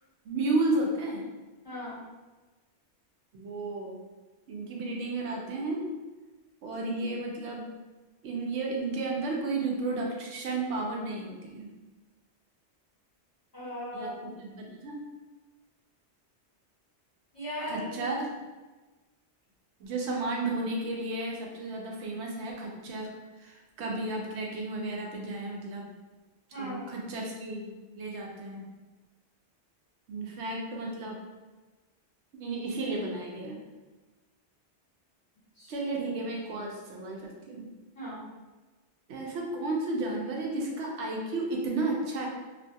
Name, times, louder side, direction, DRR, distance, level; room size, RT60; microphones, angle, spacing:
voice 1, 0.2-1.2 3.3-4.0 4.5-5.9 6.6-7.6 8.2-11.7 13.9-15.1 17.7-18.3 19.8-25.9 26.5-28.6 30.1-31.2 32.4-33.6 35.7-37.7 39.1-42.3, right 2 dB, 75° right, -1 dB, 0.9 m, -33 dB
voice 2, 1.6-2.0 13.5-14.3 17.3-18.0 26.5-26.9 35.6-35.7 37.9-38.2, equal, 35° left, -10 dB, 1.4 m, -38 dB
2.5 x 2.3 x 2.6 m, 1.2 s
omnidirectional pair, 1.2 m